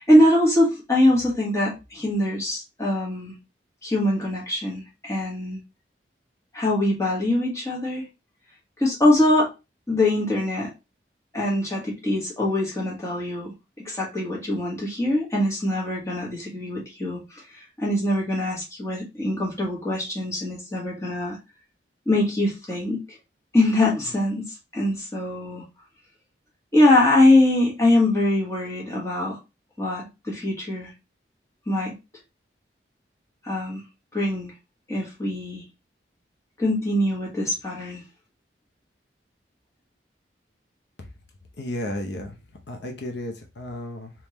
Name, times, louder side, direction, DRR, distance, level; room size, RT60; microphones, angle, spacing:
voice 1, 0.0-3.4 3.8-5.6 6.5-8.1 8.8-9.5 9.9-10.7 11.3-13.5 13.8-21.4 22.1-23.0 23.5-25.6 26.7-29.4 29.8-30.9 31.7-31.9 33.4-33.8 34.1-34.5 34.9-35.6 36.6-38.0, left 1 dB, 15° left, -4 dB, 1.4 m, -23 dB
voice 2, 41.6-42.4 42.7-44.1, left 1 dB, 75° left, 3 dB, 0.7 m, -33 dB
3.5 x 3.0 x 3.0 m, 0.26 s
head